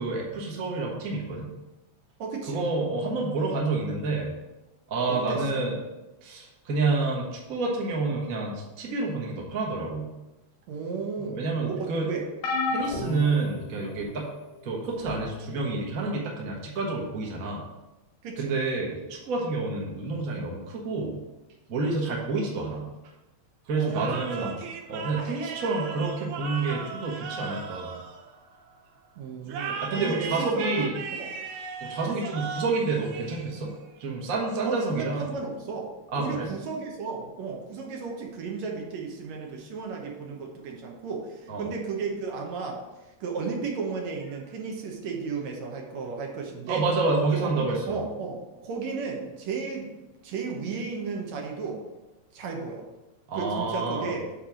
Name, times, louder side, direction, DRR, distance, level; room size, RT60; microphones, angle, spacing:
voice 1, 0.0-1.5 2.5-4.3 4.9-5.8 6.2-10.1 11.3-12.1 12.7-14.3 14.6-17.6 18.4-21.2 21.7-22.9 23.7-24.6 24.9-27.9 29.8-30.9 31.8-33.7 34.0-35.3 36.1-36.5 41.5-41.7 46.7-48.0 53.3-54.1, right 3 dB, 40° right, -2 dB, 1.3 m, -28 dB
voice 2, 2.2-2.6 5.1-5.7 10.7-12.2 18.2-18.5 23.8-24.5 29.2-31.3 32.0-32.1 34.6-42.8 43.2-46.9 47.4-49.9 50.2-51.8 52.3-52.9 53.3-54.2, right 4 dB, 70° right, 1 dB, 2.3 m, -34 dB
sound 1, 12.4-14.2 15.0-15.2 16.5-16.6, left 3 dB, 80° left, 2.4 m, -31 dB
sound 2, 23.9-28.7 29.5-33.9, right 5 dB, 90° right, 2.3 m, -37 dB
8.7 x 3.3 x 6.1 m, 1.0 s
omnidirectional pair, 3.3 m